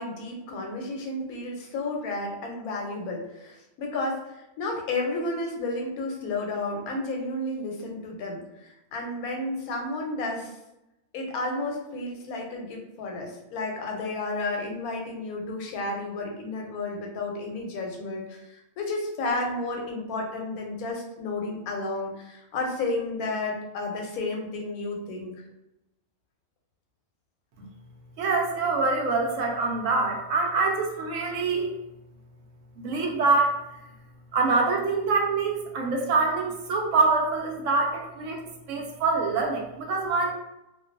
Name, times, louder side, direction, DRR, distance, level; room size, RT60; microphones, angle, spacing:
voice 1, 0.0-10.5 11.1-25.3, left 2 dB, 90° left, 1 dB, 1.1 m, -32 dB
voice 2, 28.2-31.7 32.8-33.6 34.3-40.3, right 3 dB, 70° right, 1 dB, 0.9 m, -25 dB
2.5 x 2.2 x 2.4 m, 0.90 s
omnidirectional pair, 1.5 m